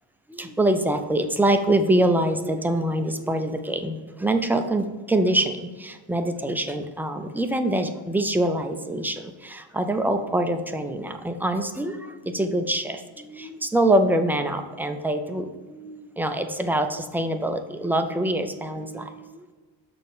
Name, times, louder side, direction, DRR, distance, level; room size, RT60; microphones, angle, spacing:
voice 1, 0.3-19.5, right 1 dB, 5° right, 6 dB, 0.4 m, -25 dB
6.7 x 4.4 x 4.9 m, 1.3 s
cardioid pair, 120°, 47 cm